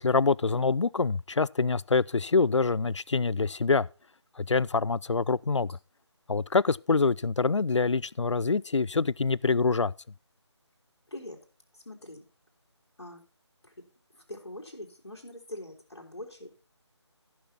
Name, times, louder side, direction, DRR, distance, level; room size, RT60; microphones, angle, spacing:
voice 1, 0.0-3.9 4.4-5.7 6.3-9.9, left 4 dB, 75° left, 0.4 m, -25 dB
voice 2, 11.1-11.4 11.7-12.3 13.0-13.2 13.6-13.8 14.3-16.5, left 1 dB, 60° left, 3.4 m, -43 dB
14.5 x 6.1 x 4.0 m
figure-of-eight pair, 160°, 15 cm